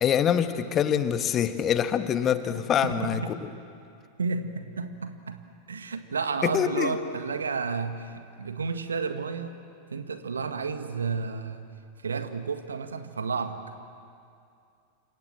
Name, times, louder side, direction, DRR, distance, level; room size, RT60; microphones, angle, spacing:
voice 1, 0.0-3.5 6.4-6.9, left 9 dB, 30° left, 10 dB, 1.4 m, -25 dB
voice 2, 2.5-3.3 4.2-9.5 9.9-11.7 12.0-13.6, right 5 dB, 70° right, 8 dB, 1.7 m, -32 dB
29.5 x 26.5 x 7.6 m, 2.4 s
figure-of-eight pair, 90°, 0 cm